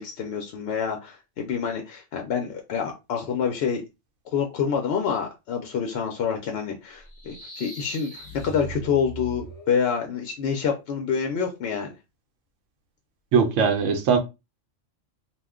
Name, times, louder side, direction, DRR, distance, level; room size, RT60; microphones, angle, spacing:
voice 1, 0.0-3.8 4.3-11.9, left 6 dB, 65° left, 0.7 m, -27 dB
sound 1, 7.0-9.8, right 2 dB, 25° left, 0.5 m, -40 dB
voice 2, 13.3-14.2, right 6 dB, 80° right, 0.9 m, -20 dB
2.4 x 2.2 x 3.5 m
omnidirectional pair, 1.3 m